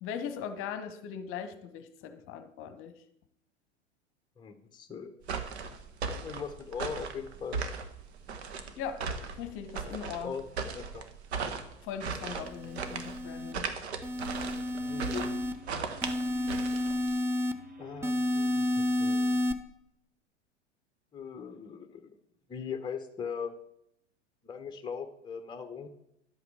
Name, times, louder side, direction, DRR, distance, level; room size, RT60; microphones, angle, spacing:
voice 1, 0.0-2.9 8.8-9.1 9.4-10.3 11.8-13.6, left 7 dB, 35° left, 10 dB, 1.1 m, -39 dB
voice 2, 4.4-5.1 6.2-7.6 10.2-11.1 14.9-15.3 17.8-19.4 21.1-22.1 22.5-23.5 24.4-25.9, left 6 dB, 10° left, 8 dB, 1.0 m, -40 dB
sound 1, 5.2-17.2, right 5 dB, 65° right, 1.4 m, -37 dB
sound 2, 12.4-13.5 14.0-15.5 16.0-17.5 18.0-19.5, left 1 dB, 5° right, 0.5 m, -30 dB
sound 3, 14.2-19.3, equal, 25° right, 1.3 m, -51 dB
11.5 x 8.2 x 4.9 m, 0.75 s
figure-of-eight pair, 90°, 35 cm